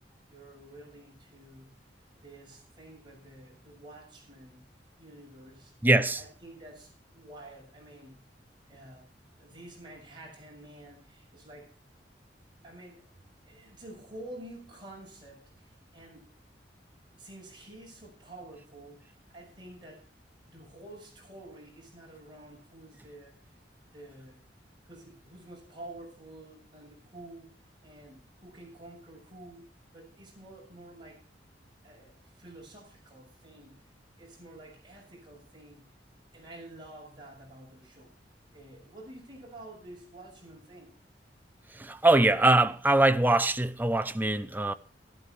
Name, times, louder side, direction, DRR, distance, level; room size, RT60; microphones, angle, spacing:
voice 1, 0.3-1.8 2.1-4.7 5.0-5.7 6.2-8.3 8.7-11.7 12.6-13.1 13.4-16.3 17.2-20.1 20.4-23.6 23.8-24.4 24.9-27.5 27.8-31.2 31.8-33.9 34.2-36.0 36.3-38.2 38.5-40.9, right 1 dB, 25° right, 6.9 m, -49 dB
voice 2, 5.8-6.2 41.8-44.7, right 2 dB, 10° right, 0.6 m, -23 dB
13.5 x 12.0 x 4.8 m
head